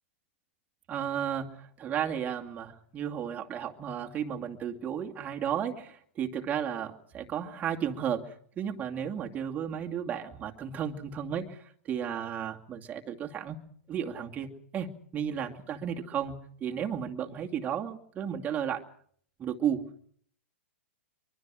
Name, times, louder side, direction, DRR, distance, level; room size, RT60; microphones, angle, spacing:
voice 1, 0.9-13.6 13.9-16.4 16.6-18.8 19.4-20.1, right 8 dB, 20° right, 2 dB, 2.4 m, -34 dB
24.0 x 23.5 x 6.3 m, 0.62 s
hypercardioid pair, 115°, 7 cm